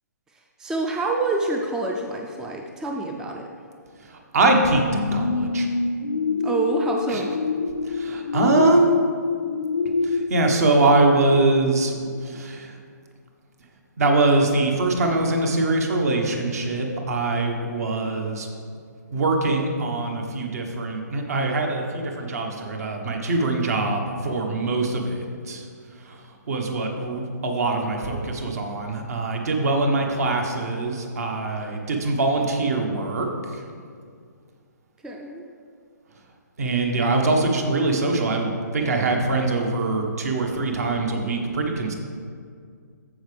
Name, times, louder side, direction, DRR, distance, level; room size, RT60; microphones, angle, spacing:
voice 1, 0.6-3.5 6.4-7.3 35.0-35.4, right 2 dB, 5° right, 1 dB, 0.4 m, -27 dB
voice 2, 4.0-5.7 7.1-7.3 7.8-8.9 10.0-12.8 14.0-18.5 19.1-33.6 36.6-41.9, right 2 dB, 55° right, 3 dB, 1.4 m, -23 dB
sound 1, 4.5-11.9 12.4-12.5, left 3 dB, 80° left, 0.5 m, -26 dB
14.0 x 5.0 x 3.5 m, 2.2 s
figure-of-eight pair, 135°, 10 cm